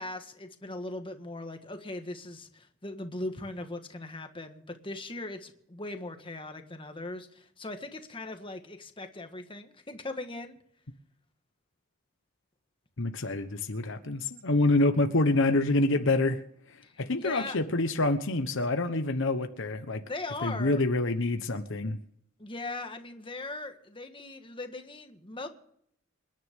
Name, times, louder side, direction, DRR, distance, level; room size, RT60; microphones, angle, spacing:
voice 1, 0.0-10.6 16.8-17.6 20.1-20.8 22.4-25.5, left 2 dB, 25° left, 1.6 m, -39 dB
voice 2, 13.0-16.4 17.0-20.0 20.4-22.0, left 2 dB, 65° left, 1.1 m, -26 dB
27.5 x 10.5 x 3.7 m
head